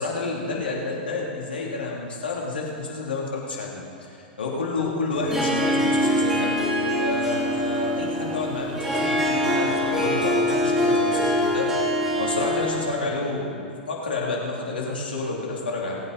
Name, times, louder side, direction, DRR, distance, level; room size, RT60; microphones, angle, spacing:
voice 1, 0.0-6.5 7.0-11.7 12.1-16.0, left 3 dB, 80° left, -3 dB, 3.2 m, -29 dB
Harp, 5.1-13.0, equal, 10° right, 2.7 m, -24 dB
21.5 x 8.8 x 4.3 m, 2.6 s
figure-of-eight pair, 100°, 5 cm